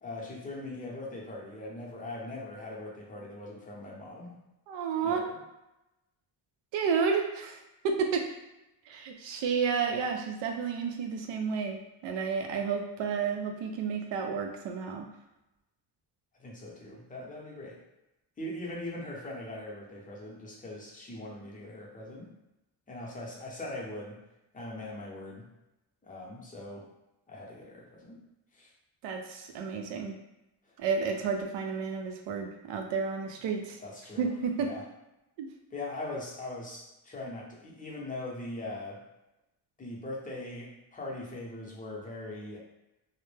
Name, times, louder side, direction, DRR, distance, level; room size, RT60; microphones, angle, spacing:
voice 1, 0.0-4.4 5.0-5.4 16.4-17.8 18.4-22.3 22.9-24.2 24.5-25.5 26.0-26.9 27.3-28.2 28.5-28.7 33.8-34.3 34.6-34.8 35.7-39.0 39.8-42.6, left 2 dB, 20° left, -3 dB, 0.6 m, -41 dB
voice 2, 4.7-5.3 6.7-8.3 8.9-15.1 29.0-30.2 30.8-33.8 34.2-34.7 35.4-35.5, right 5 dB, 75° right, 4 dB, 0.5 m, -31 dB
2.1 x 2.0 x 3.2 m, 0.94 s
cardioid pair, 100°, 44 cm